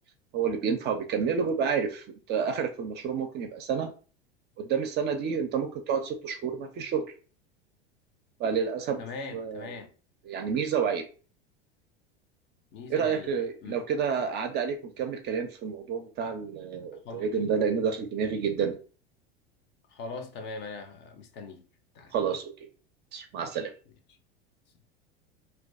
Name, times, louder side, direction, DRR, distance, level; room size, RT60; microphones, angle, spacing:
voice 1, 0.3-3.9 4.6-7.1 8.4-9.0 9.3-9.7 10.3-11.1 12.9-18.8 22.1-22.7 23.1-23.7, right 6 dB, 35° right, 0.5 m, -29 dB
voice 2, 9.0-9.9 12.7-13.3 13.6-13.8 17.0-17.3 19.9-21.7 21.9-22.1, left 4 dB, 35° left, 0.5 m, -41 dB
2.3 x 2.2 x 2.4 m
hypercardioid pair, 85°, 31 cm